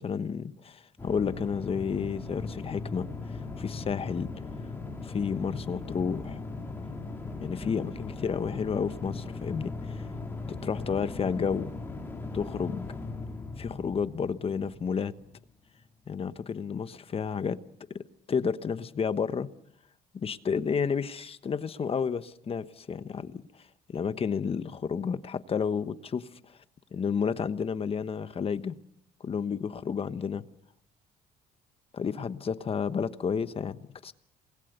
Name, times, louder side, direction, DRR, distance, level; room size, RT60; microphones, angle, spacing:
voice 1, 0.0-3.1 3.6-4.3 5.0-6.4 7.4-10.0 10.5-11.7 12.3-12.9 13.6-15.1 16.1-17.6 17.9-18.0 18.3-19.5 20.1-23.4 23.9-26.3 26.9-28.8 29.2-30.4 31.9-34.1, left 6 dB, 35° left, 1.2 m, -31 dB
sound 1, 1.0-15.4, left 3 dB, 15° left, 3.9 m, -38 dB
27.5 x 20.5 x 6.8 m
cardioid pair, 110°, 17 cm